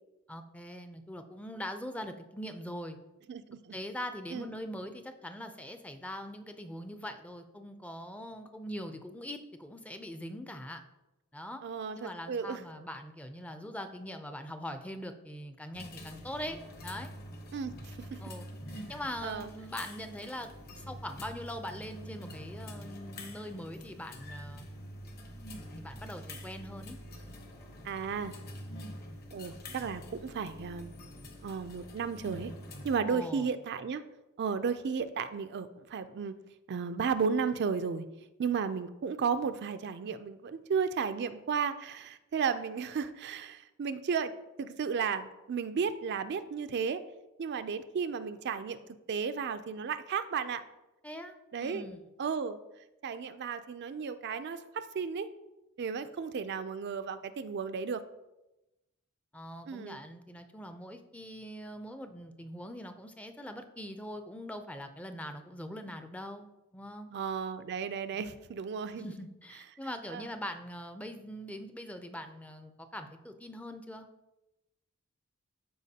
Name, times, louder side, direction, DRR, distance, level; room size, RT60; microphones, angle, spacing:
voice 1, 0.3-3.0 3.7-10.8 11.3-11.6 11.9-17.1 18.2-18.5 18.9-20.5 20.8-24.7 25.8-27.0 33.1-33.5 51.0-51.3 51.6-52.0 59.3-66.5 66.7-67.1 68.1-68.3 69.0-74.1, equal, 5° left, 7 dB, 0.4 m, -42 dB
voice 2, 3.3-3.7 4.3-4.5 11.6-12.6 17.5-18.2 19.2-19.5 27.8-28.3 29.3-30.9 31.4-32.5 32.8-34.0 34.4-36.3 36.7-38.0 38.4-44.3 44.6-47.0 47.4-48.8 49.1-50.6 51.5-51.9 52.2-52.6 53.0-55.3 55.8-58.0 59.7-60.0 67.1-69.1 70.1-70.2, right 6 dB, 50° right, 10 dB, 0.4 m, -34 dB
sound 1, 15.7-33.0, equal, 45° left, 1.1 m, -46 dB
13.0 x 4.5 x 2.8 m, 0.98 s
head